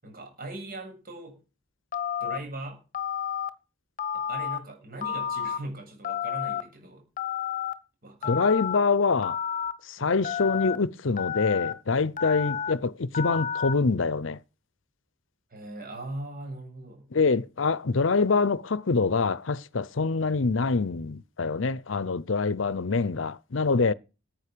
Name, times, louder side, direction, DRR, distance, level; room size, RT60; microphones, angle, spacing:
voice 1, 0.0-1.4 2.2-2.8 4.1-7.0 8.0-8.5 10.0-10.3 15.5-17.1, right 2 dB, 45° right, 7.6 m, -40 dB
Telephone, 1.9-2.4 2.9-3.5 4.0-4.6 5.0-5.6 6.0-6.6 7.2-7.7 8.2-8.8 9.2-9.7 10.2-10.8 11.2-11.7 12.2-12.7 13.1-13.7, left 8 dB, 40° left, 1.1 m, -30 dB
voice 2, 8.3-9.4 9.9-14.4 17.1-23.9, left 4 dB, 70° left, 0.7 m, -25 dB
14.5 x 9.1 x 6.8 m
head